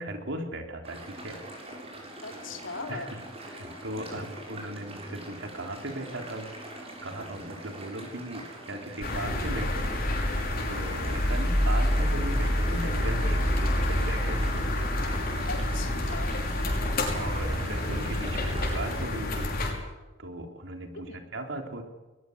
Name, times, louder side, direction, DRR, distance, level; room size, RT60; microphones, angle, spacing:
voice 1, 0.0-1.4 2.9-6.5 7.0-14.5 14.9-15.3 17.1-19.5 20.2-21.8, right 1 dB, 65° right, 3 dB, 3.9 m, -38 dB
sound 1, 0.8-19.1, right 1 dB, 30° right, 7.9 m, -43 dB
voice 2, 2.2-3.2 4.1-4.2 15.5-16.4 20.9-21.3, left 3 dB, 70° left, 4 dB, 3.4 m, -39 dB
sound 2, 9.0-19.7, left 1 dB, 45° left, 5.9 m, -27 dB
21.5 x 21.0 x 8.2 m, 1.2 s
head